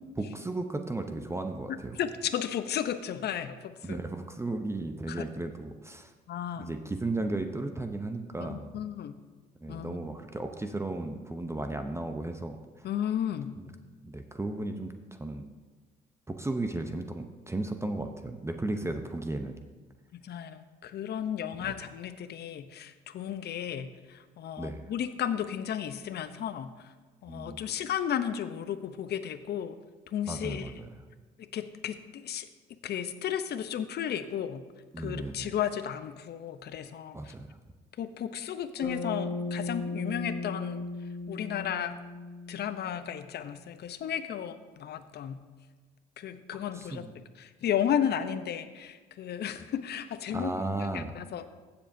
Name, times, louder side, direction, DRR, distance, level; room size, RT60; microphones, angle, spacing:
voice 1, 0.2-2.0 3.8-6.1 6.6-8.8 9.6-12.9 13.6-13.7 14.0-15.5 16.3-19.6 21.6-21.7 24.6-24.8 27.3-27.6 30.3-30.9 34.9-35.5 37.1-37.6 46.7-47.1 50.3-51.2, right 2 dB, 15° right, 6 dB, 0.8 m, -35 dB
voice 2, 2.0-4.0 5.1-5.2 6.3-6.7 8.4-9.2 9.7-10.0 12.8-13.6 20.2-26.7 27.2-29.8 30.1-30.7 31.4-32.5 32.8-34.6 35.0-37.3 38.0-40.8 41.3-41.9 42.5-45.4 46.2-50.5 50.9-51.5, left 9 dB, 55° left, 11 dB, 0.8 m, -34 dB
Bass guitar, 38.8-43.2, left 3 dB, 20° left, 2.9 m, -37 dB
15.5 x 7.2 x 2.7 m, 1.3 s
supercardioid pair, 65°, 20 cm